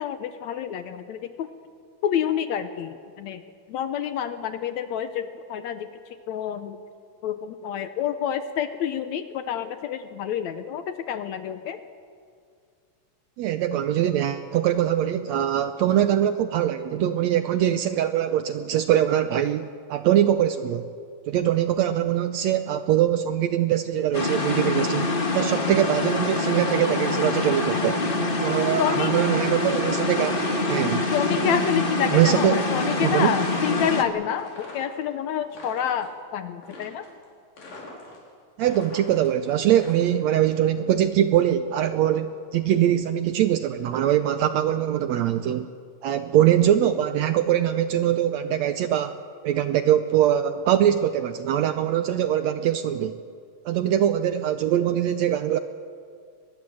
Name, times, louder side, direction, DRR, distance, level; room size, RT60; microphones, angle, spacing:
voice 1, 0.0-1.5 2.0-3.4 3.7-6.8 7.2-11.8 28.8-29.2 31.1-37.1, left 9 dB, 70° left, 10 dB, 1.9 m, -28 dB
voice 2, 13.4-20.9 21.3-28.0 28.4-31.1 32.1-32.6 33.0-33.3 38.6-45.7 46.0-49.2 49.4-53.2 53.7-55.6, right 11 dB, 75° right, 10 dB, 1.7 m, -22 dB
sound 1, 24.1-34.0, left 2 dB, 30° left, 1.0 m, -25 dB
sound 2, 25.0-25.8 26.1-27.7 27.9-29.8 30.2-32.5 32.8-33.1 33.4-35.0 35.4-36.1 36.6-37.2 37.6-38.3 38.6-40.4, left 2 dB, 90° left, 6.2 m, -44 dB
23.5 x 21.0 x 7.7 m, 2.2 s
omnidirectional pair, 3.8 m